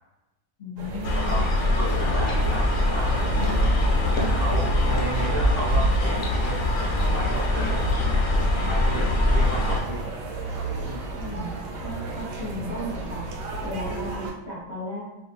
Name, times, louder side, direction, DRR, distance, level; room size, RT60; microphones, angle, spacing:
voice 1, 0.6-1.4 11.2-13.2 13.6-15.0, left 1 dB, 30° left, -9 dB, 0.9 m, -35 dB
sound 1, 0.8-14.3, right 3 dB, 85° right, 1.2 m, -34 dB
sound 2, 1.0-9.8, left 1 dB, 70° left, 0.7 m, -23 dB
voice 2, 1.1-1.5 1.7-3.6 4.1-8.0 8.6-10.1 10.8-11.2, right 2 dB, 65° right, -6 dB, 0.5 m, -34 dB
2.6 x 2.5 x 2.8 m, 1.0 s
omnidirectional pair, 1.7 m